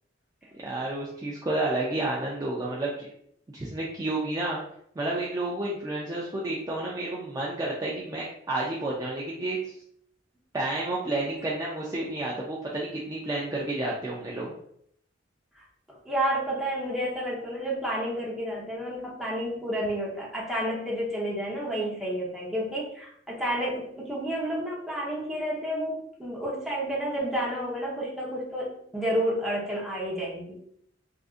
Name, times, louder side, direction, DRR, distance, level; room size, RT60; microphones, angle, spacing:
voice 1, 0.6-3.1 3.5-4.6 5.0-9.6 10.5-14.5, right 2 dB, 20° right, -4 dB, 0.4 m, -30 dB
voice 2, 16.0-30.6, equal, ahead, -5 dB, 0.8 m, -30 dB
3.6 x 2.5 x 2.4 m, 0.69 s
head